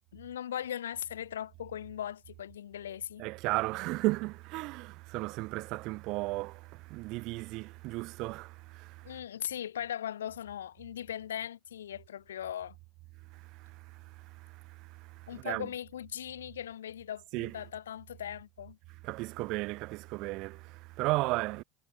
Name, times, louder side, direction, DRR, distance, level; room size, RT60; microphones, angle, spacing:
voice 1, 0.0-3.3 9.0-12.8 15.3-18.8, left 10 dB, 80° left, 1.2 m, -39 dB
voice 2, 3.2-9.2 13.3-15.7 17.3-17.5 19.0-21.6, right 22 dB, 60° right, 1.2 m, -35 dB
hypercardioid pair, 70°, 0 cm